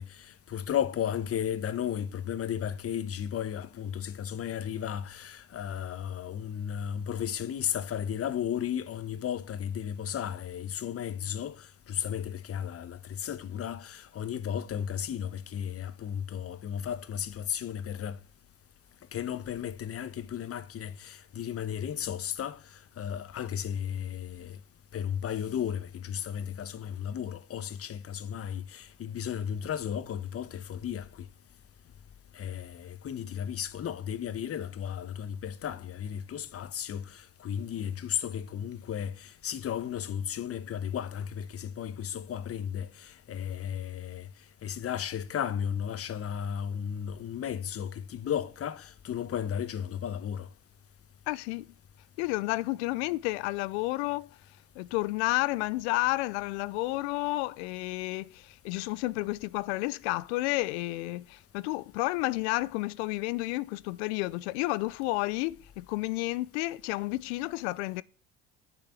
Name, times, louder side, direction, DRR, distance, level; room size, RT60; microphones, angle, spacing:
voice 1, 0.0-18.2 19.1-24.6 24.9-31.3 32.3-44.3 44.6-50.5, left 9 dB, 45° left, 1.1 m, -34 dB
voice 2, 51.3-51.7 52.2-54.3 54.8-68.0, left 20 dB, 75° left, 0.6 m, -31 dB
8.5 x 7.0 x 8.0 m
hypercardioid pair, 65°, 34 cm